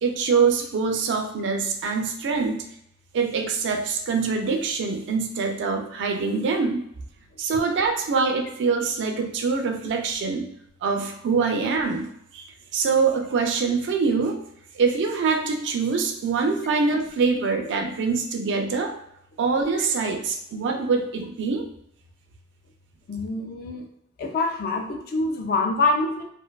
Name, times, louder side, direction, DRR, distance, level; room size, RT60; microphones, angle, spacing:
voice 1, 0.0-2.7 3.1-6.8 7.4-10.4 10.8-12.1 12.3-12.4 12.7-14.4 14.8-18.9 19.4-21.7, right 4 dB, 55° right, 4 dB, 0.3 m, -24 dB
voice 2, 23.1-23.8 24.2-26.2, left 3 dB, 45° left, 3 dB, 0.4 m, -25 dB
2.5 x 2.2 x 2.2 m, 0.72 s
head